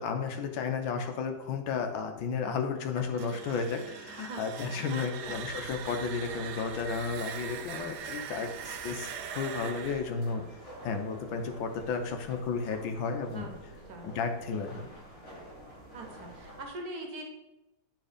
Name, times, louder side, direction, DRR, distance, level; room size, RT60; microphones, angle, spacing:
voice 1, 0.0-10.4 10.8-13.5 14.0-14.9, left 5 dB, 90° left, 5 dB, 1.6 m, -33 dB
sound 1, 3.0-11.8, right 8 dB, 70° right, 1.0 m, -42 dB
voice 2, 3.7-5.4 13.3-13.5 13.9-14.1 15.9-17.2, right 2 dB, 55° right, 2 dB, 1.5 m, -43 dB
sound 2, 5.2-16.6, equal, 45° left, 3.2 m, -49 dB
9.2 x 3.5 x 5.0 m, 0.98 s
omnidirectional pair, 2.0 m